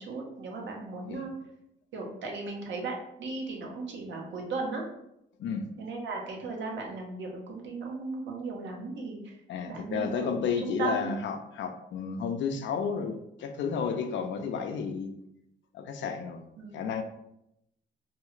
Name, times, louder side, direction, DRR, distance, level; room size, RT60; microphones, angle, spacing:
voice 1, 0.0-1.3 1.9-4.9 5.8-9.4 9.7-11.1 16.6-16.9, right 3 dB, 70° right, 0 dB, 0.8 m, -36 dB
voice 2, 9.5-15.1 15.7-16.4 16.7-17.0, left 6 dB, 70° left, 6 dB, 0.4 m, -32 dB
2.7 x 2.3 x 3.0 m, 0.80 s
cardioid pair, 90°, 20 cm